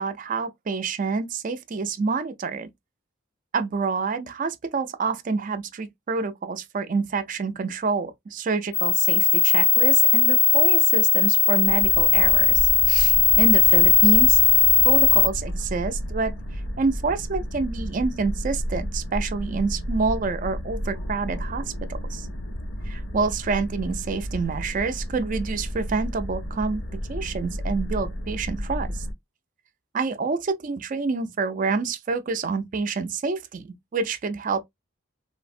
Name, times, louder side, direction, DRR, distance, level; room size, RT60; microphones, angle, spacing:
voice 1, 0.0-2.7 3.5-14.4 14.8-22.3 22.9-26.8 27.1-29.0 29.9-34.6, right 4 dB, 40° right, 0.4 m, -27 dB
sound 1, 8.7-15.3, left 8 dB, 35° left, 0.4 m, -18 dB
sound 2, 11.6-29.1, equal, 65° left, 0.7 m, -32 dB
3.2 x 2.0 x 2.5 m
head